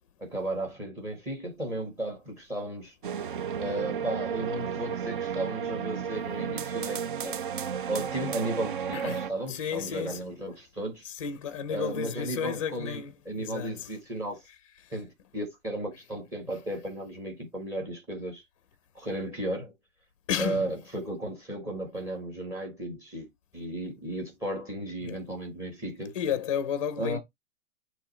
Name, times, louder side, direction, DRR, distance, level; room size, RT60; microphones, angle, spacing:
voice 1, 0.2-2.9 3.6-7.4 7.9-11.0 11.7-14.4 14.9-18.4 18.9-19.7 20.4-26.1 27.0-27.2, right 1 dB, 5° right, 1.5 m, -34 dB
sound 1, 3.0-9.3, right 7 dB, 40° right, 0.5 m, -33 dB
voice 2, 9.5-10.3 11.0-13.9 20.3-20.7 25.0-25.2 26.1-27.2, left 8 dB, 25° left, 0.6 m, -32 dB
8.7 x 3.1 x 4.2 m
hypercardioid pair, 175°, 39 cm